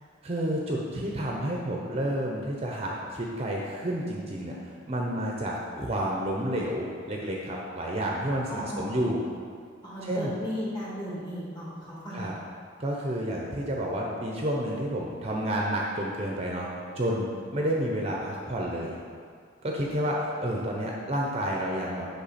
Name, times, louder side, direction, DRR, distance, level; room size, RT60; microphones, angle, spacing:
voice 1, 0.2-4.6 4.9-9.2 10.0-10.3 12.1-12.3 12.8-16.7 17.0-19.0 19.6-22.1, right 1 dB, 30° right, -2 dB, 0.7 m, -30 dB
voice 2, 8.5-9.0 9.8-12.3, equal, 20° left, -7 dB, 2.0 m, -35 dB
8.7 x 5.8 x 4.2 m, 2.1 s
head